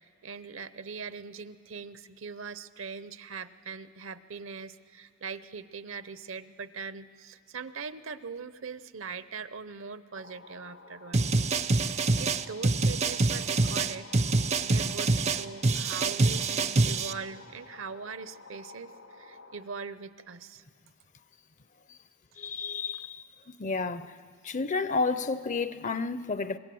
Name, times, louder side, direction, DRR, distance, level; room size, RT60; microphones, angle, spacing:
voice 1, 0.2-11.2 12.2-14.1 14.6-18.9 19.2-20.6 22.4-22.5, right 5 dB, 65° right, 0.7 m, -41 dB
sound 1, 10.2-19.6, left 4 dB, 75° left, 1.5 m, -51 dB
sound 2, 11.1-17.1, right 3 dB, 30° right, 0.5 m, -26 dB
voice 2, 22.4-23.2 23.6-24.2 24.4-26.6, left 4 dB, 35° left, 0.6 m, -31 dB
26.0 x 21.5 x 7.7 m
head